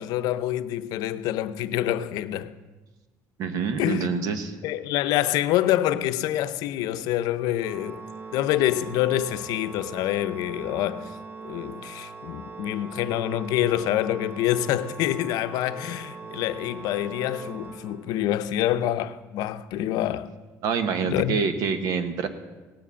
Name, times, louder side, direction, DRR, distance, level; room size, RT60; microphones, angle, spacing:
voice 1, 0.0-2.5 3.8-4.2 4.6-8.0 8.3-11.1 11.4-20.3 21.1-21.4, left 12 dB, 75° left, 0.6 m, -26 dB
voice 2, 3.4-4.5 20.6-22.3, right 6 dB, 65° right, 1.2 m, -26 dB
Organ, 7.6-18.5, right 4 dB, 35° right, 0.7 m, -41 dB
17.5 x 7.6 x 6.9 m
cardioid pair, 150°, 7 cm